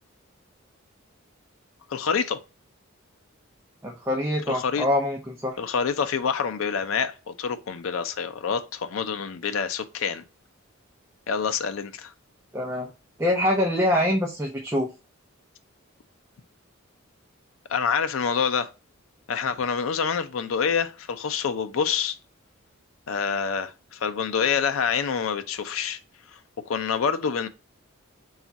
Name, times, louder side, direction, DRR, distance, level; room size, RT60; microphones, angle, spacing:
voice 1, 1.9-2.4 4.5-4.9 5.6-10.2 11.3-12.1 17.7-18.7 19.3-22.2 23.1-26.0 26.7-27.5, left 6 dB, 75° left, 0.5 m, -27 dB
voice 2, 3.8-5.6 12.5-12.9 13.2-14.9, left 1 dB, 10° right, 0.5 m, -24 dB
3.5 x 2.4 x 3.9 m
head